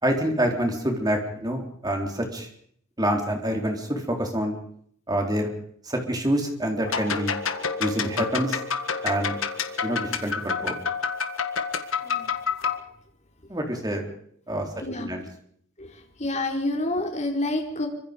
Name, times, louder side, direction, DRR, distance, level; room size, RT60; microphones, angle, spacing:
voice 1, 0.0-2.5 3.0-4.6 5.1-5.5 5.8-7.3 7.8-8.6 9.0-9.4 9.8-10.8 13.5-14.1 14.5-14.7 15.0-15.2, right 1 dB, 20° right, 3 dB, 3.9 m, -26 dB
sound 1, 6.8-12.8, left 5 dB, 65° left, 1.9 m, -28 dB
voice 2, 14.5-15.2 15.8-17.9, left 2 dB, 35° left, 1 dB, 4.5 m, -29 dB
26.0 x 25.0 x 5.3 m, 0.65 s
head